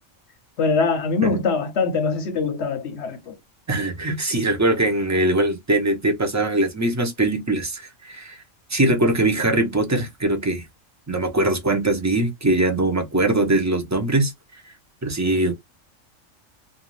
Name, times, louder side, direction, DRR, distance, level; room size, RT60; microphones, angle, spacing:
voice 1, 0.6-3.4, left 4 dB, 60° left, 0.8 m, -23 dB
voice 2, 3.7-8.4 8.7-10.7 11.1-14.3 15.0-15.5, right 2 dB, 25° right, 0.3 m, -21 dB
2.5 x 2.3 x 3.0 m
omnidirectional pair, 1.4 m